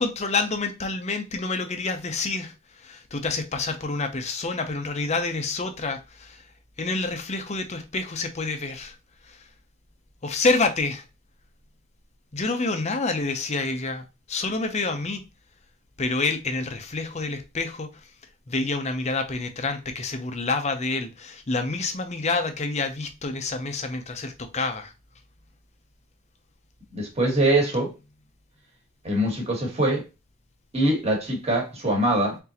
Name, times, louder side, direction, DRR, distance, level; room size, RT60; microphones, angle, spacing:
voice 1, 0.0-6.5 6.8-9.0 9.2-9.5 10.2-11.0 12.3-15.2 16.0-18.1 18.5-24.9, left 3 dB, 30° left, 0.6 m, -28 dB
voice 2, 26.9-27.9 29.0-30.0 30.7-32.4, right 1 dB, 30° right, 1.5 m, -23 dB
4.0 x 3.7 x 2.8 m
head